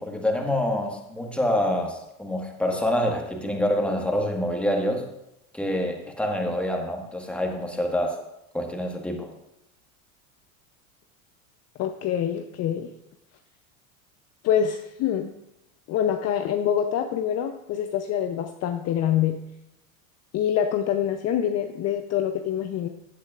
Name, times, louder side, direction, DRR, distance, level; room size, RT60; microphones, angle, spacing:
voice 1, 0.0-5.1 5.5-8.2 8.5-9.3, left 1 dB, 5° left, 1 dB, 1.6 m, -26 dB
voice 2, 11.8-12.9 14.4-15.3 15.9-19.4 20.3-22.9, left 9 dB, 40° left, 6 dB, 0.7 m, -25 dB
15.0 x 8.2 x 2.5 m, 0.87 s
supercardioid pair, 110°, 42 cm